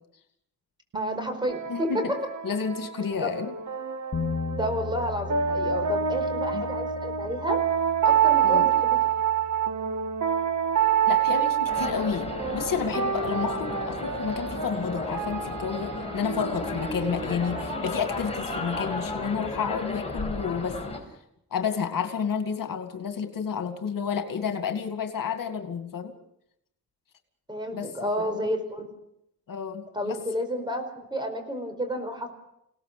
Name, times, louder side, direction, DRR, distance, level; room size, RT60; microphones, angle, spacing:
voice 1, 0.9-1.9 3.2-3.3 4.5-7.6 8.0-9.0 17.3-17.6 27.5-28.9 29.9-30.8 31.1-32.3, equal, 15° right, 6 dB, 4.9 m, -31 dB
sound 1, 0.9-18.4, right 8 dB, 60° right, 2.0 m, -28 dB
voice 2, 1.7-2.1 2.4-3.6 6.5-6.6 8.4-8.7 11.1-20.8 21.5-26.1 27.7-27.9 28.2-28.4 29.5-30.2, left 6 dB, 80° left, 7 dB, 2.3 m, -30 dB
sound 2, 4.1-14.2, left 5 dB, 45° left, 2.1 m, -39 dB
sound 3, 11.7-21.0, left 2 dB, 20° left, 5.5 m, -34 dB
29.5 x 18.0 x 6.8 m, 0.79 s
wide cardioid pair, 125°, 33 cm